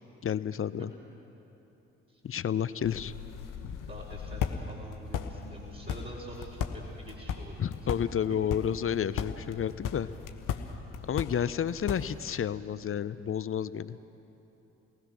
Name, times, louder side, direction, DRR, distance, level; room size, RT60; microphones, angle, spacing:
voice 1, 0.2-0.9 2.2-3.1 7.6-10.1 11.0-14.0, left 8 dB, 35° left, 16 dB, 0.7 m, -31 dB
sound 1, 2.8-12.4, left 7 dB, 60° left, 1.3 m, -37 dB
voice 2, 3.9-8.0 8.5-8.6 9.2-9.3, right 1 dB, 25° right, -5 dB, 4.8 m, -46 dB
29.5 x 19.5 x 6.3 m, 3.0 s
hypercardioid pair, 45°, 36 cm